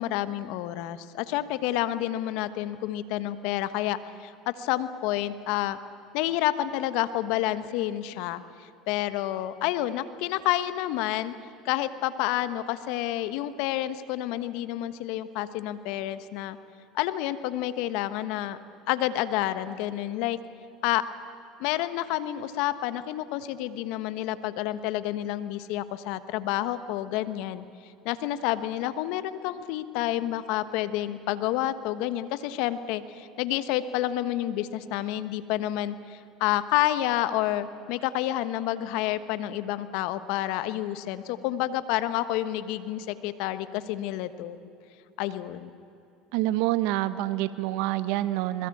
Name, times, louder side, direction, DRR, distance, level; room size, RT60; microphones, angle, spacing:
voice 1, 0.0-5.8 6.1-11.3 11.6-16.6 16.9-18.6 18.9-20.4 20.8-21.0 21.6-27.6 28.0-44.7 45.2-45.7, left 14 dB, 70° left, 13 dB, 1.2 m, -29 dB
voice 2, 46.3-48.7, right 15 dB, 75° right, 14 dB, 0.9 m, -27 dB
22.5 x 21.5 x 8.6 m, 2.8 s
supercardioid pair, 85°, 0 cm